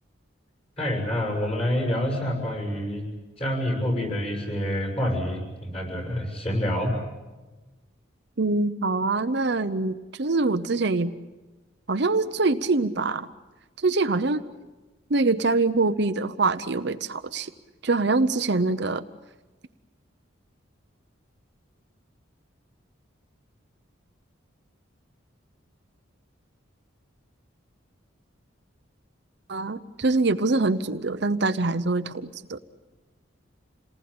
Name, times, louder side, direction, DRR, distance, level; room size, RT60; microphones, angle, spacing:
voice 1, 0.8-3.0 3.4-6.9, equal, 30° left, 3 dB, 6.6 m, -27 dB
voice 2, 8.4-11.1 11.9-13.3 13.8-14.4 15.1-17.5 17.8-19.0 29.5-32.6, right 3 dB, 55° right, 9 dB, 0.8 m, -24 dB
28.0 x 19.5 x 8.7 m, 1.2 s
head